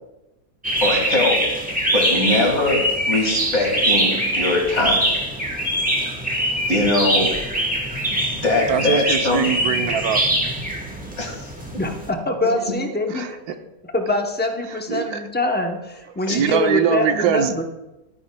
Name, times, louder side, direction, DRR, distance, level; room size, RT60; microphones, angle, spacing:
sound 1, 0.6-12.1, right 1 dB, 5° right, 1.0 m, -23 dB
voice 1, 0.8-1.4 1.9-5.1 6.7-7.3 8.1-9.4 11.2-11.5 16.3-16.4, left 2 dB, 50° left, 1 dB, 2.2 m, -21 dB
voice 2, 8.7-10.2 13.1-13.6 14.7-15.2 16.3-17.5, right 8 dB, 80° right, 7 dB, 1.2 m, -22 dB
voice 3, 11.8-13.4 13.9-17.6, left 2 dB, 15° left, 3 dB, 0.3 m, -24 dB
12.5 x 9.7 x 2.2 m, 0.96 s
omnidirectional pair, 1.6 m